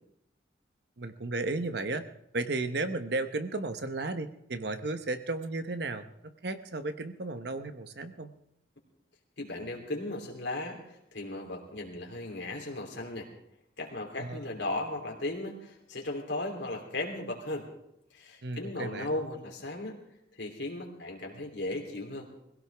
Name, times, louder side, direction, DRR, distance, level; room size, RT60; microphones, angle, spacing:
voice 1, 1.0-2.0 2.3-8.3 14.2-14.4 18.4-19.1, right 2 dB, 60° right, 9 dB, 1.0 m, -34 dB
voice 2, 9.4-13.3 13.8-17.7 18.1-20.0 20.3-22.3, left 2 dB, 70° left, 1 dB, 3.2 m, -36 dB
21.0 x 16.5 x 3.5 m, 0.79 s
head